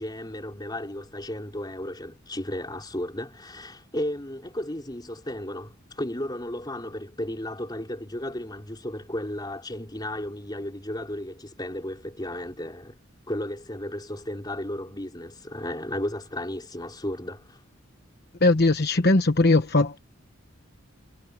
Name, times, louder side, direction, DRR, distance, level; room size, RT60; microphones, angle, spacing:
voice 1, 0.0-13.0 13.3-17.6, left 1 dB, 20° left, 4.3 m, -34 dB
voice 2, 18.4-20.0, left 2 dB, 55° left, 1.1 m, -20 dB
head